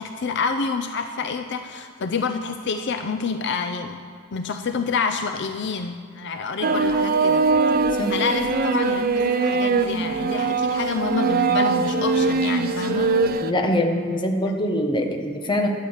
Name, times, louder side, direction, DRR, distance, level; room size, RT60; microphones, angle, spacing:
voice 1, 0.0-4.0 4.3-7.4 8.1-13.1, left 5 dB, 60° left, 7 dB, 0.5 m, -28 dB
sound 1, 6.6-13.5, right 4 dB, 45° right, 0.6 m, -21 dB
voice 2, 13.4-15.7, left 1 dB, 25° left, 3 dB, 1.2 m, -23 dB
12.0 x 9.0 x 7.3 m, 2.2 s
head